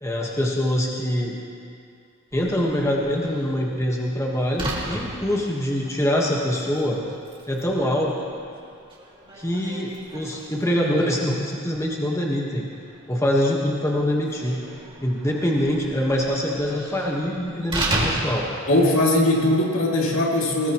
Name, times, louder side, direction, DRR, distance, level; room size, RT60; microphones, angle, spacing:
voice 1, 0.0-1.4 2.3-7.0 7.5-8.1 9.4-12.6 13.1-14.6 15.0-18.5, equal, 15° left, -2 dB, 1.4 m, -24 dB
Slam, 2.3-19.5, right 1 dB, 25° right, 2.3 m, -35 dB
voice 2, 18.7-20.7, left 1 dB, 70° left, -3 dB, 2.7 m, -20 dB
20.0 x 18.5 x 3.1 m, 2.4 s
head